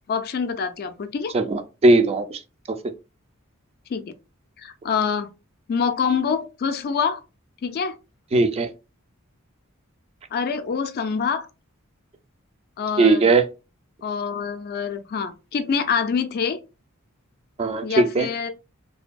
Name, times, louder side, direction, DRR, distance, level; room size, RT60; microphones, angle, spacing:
voice 1, 0.1-1.3 3.9-4.0 4.6-5.3 5.7-7.2 7.6-8.0 10.3-11.5 12.8-13.3 14.0-16.6 17.8-18.5, left 6 dB, 45° left, 0.3 m, -25 dB
voice 2, 1.3-2.4 2.7-2.8 8.3-8.7 13.0-13.4 17.6-18.3, right 2 dB, 30° right, 0.3 m, -18 dB
2.7 x 2.6 x 2.2 m
head